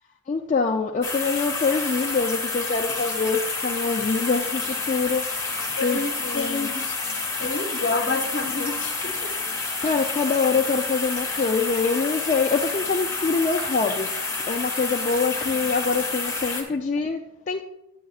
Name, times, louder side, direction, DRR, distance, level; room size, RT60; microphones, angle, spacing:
voice 1, 0.3-5.3 5.8-6.7 9.8-14.1 14.5-17.2 17.5-17.6, left 4 dB, 35° left, 1 dB, 0.3 m, -25 dB
sound 1, 1.0-16.6, left 3 dB, 15° left, 1.0 m, -29 dB
voice 2, 5.7-7.0 7.4-9.3 16.7-16.8, left 3 dB, 60° left, 5 dB, 0.8 m, -29 dB
9.2 x 8.3 x 2.4 m, 0.90 s
head